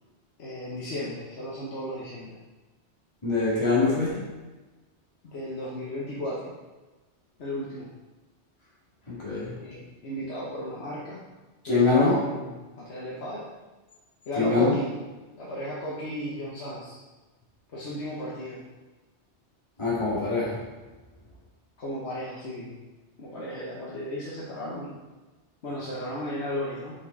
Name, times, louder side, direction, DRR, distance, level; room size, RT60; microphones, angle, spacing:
voice 1, 0.4-2.4 5.2-6.5 7.4-7.9 9.5-11.2 11.7-13.5 14.3-14.9 15.4-17.0 17.7-18.6 21.8-22.7 23.2-25.0 25.6-26.9, equal, 70° left, -6 dB, 1.4 m, -34 dB
voice 2, 3.2-4.2 9.1-9.5 11.6-12.1 14.4-14.7 19.8-20.6, left 3 dB, 25° left, -8 dB, 2.2 m, -23 dB
6.2 x 5.4 x 4.0 m, 1.2 s
omnidirectional pair, 1.2 m